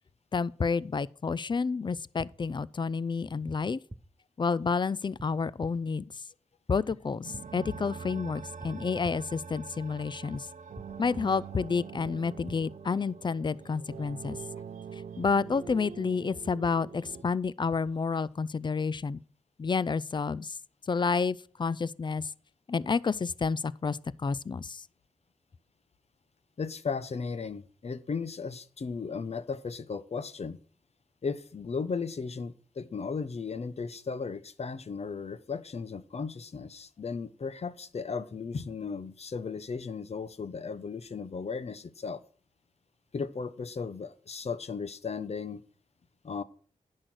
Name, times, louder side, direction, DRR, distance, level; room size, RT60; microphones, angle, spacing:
voice 1, 0.3-3.8 4.4-6.2 6.7-10.5 11.0-14.4 14.9-19.2 19.6-20.6 20.8-22.3 22.7-24.9, left 5 dB, 35° left, 0.4 m, -30 dB
sound 1, 2.2-2.3 3.5-3.6 3.9-4.0 5.2-5.3 5.6-5.7 6.9-7.0 7.3-7.4 8.6-8.7 9.0-9.1 10.3-10.4 10.7-10.9 12.0-12.1 12.5-12.6, right 1 dB, 15° right, 0.8 m, -44 dB
sound 2, 7.2-17.2, right 6 dB, 85° right, 0.7 m, -44 dB
voice 2, 26.6-30.6 31.2-42.2 43.1-45.6 46.2-46.4, left 5 dB, 55° left, 0.9 m, -36 dB
10.5 x 6.5 x 6.1 m
wide cardioid pair, 75°, 13 cm